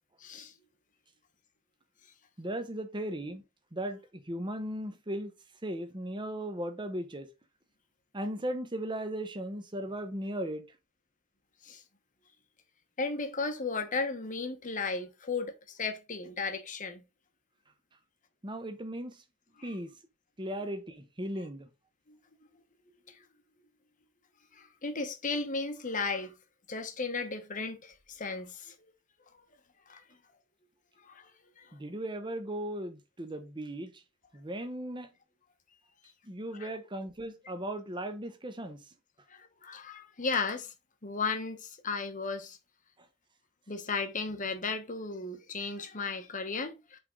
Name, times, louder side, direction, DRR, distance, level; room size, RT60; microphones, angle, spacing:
voice 1, 0.2-0.5 11.6-11.8 13.0-17.0 19.6-19.8 22.1-22.2 23.1-23.2 24.5-26.3 26.7-28.9 29.9-30.0 31.0-31.3 31.6-31.7 36.5-36.7 39.3-40.7 41.0-42.6 43.7-47.0, left 4 dB, 40° left, 1.1 m, -35 dB
voice 2, 2.4-3.4 3.7-5.3 5.6-7.3 8.1-10.6 18.4-19.2 19.6-19.9 20.4-21.7 31.7-33.9 34.3-35.1 36.2-38.8, right 1 dB, 20° right, 0.9 m, -37 dB
8.0 x 3.8 x 3.8 m
head